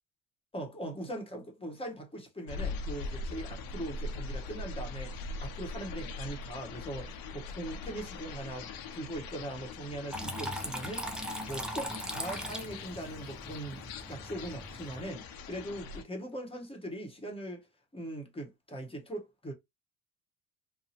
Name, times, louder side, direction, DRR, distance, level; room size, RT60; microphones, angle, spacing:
voice 1, 0.5-11.1 11.4-17.6 17.9-19.5, right 1 dB, 15° left, 1.0 m, -41 dB
sound 1, 2.5-16.0, left 3 dB, 55° left, 0.6 m, -41 dB
Water tap faucet / Trickle dribble, 10.1-15.1, equal, ahead, 0.3 m, -39 dB
2.7 x 2.0 x 2.8 m
supercardioid pair, 75°, 42 cm